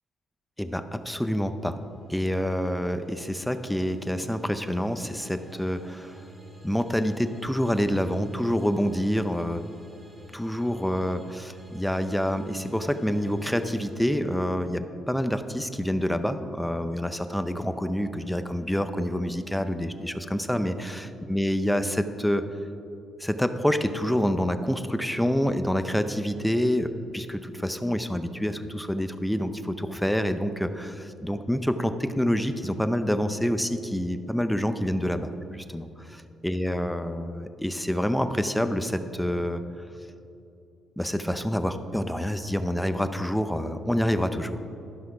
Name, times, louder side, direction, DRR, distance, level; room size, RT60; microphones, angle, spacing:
voice 1, 0.6-1.8 2.1-6.2 6.6-9.6 10.3-22.4 23.2-39.6 41.0-44.6, equal, 5° left, 10 dB, 0.5 m, -27 dB
sound 1, 1.8-13.9, right 1 dB, 25° right, 1.9 m, -50 dB
12.0 x 5.9 x 4.8 m, 2.8 s
cardioid pair, 90°, 0 cm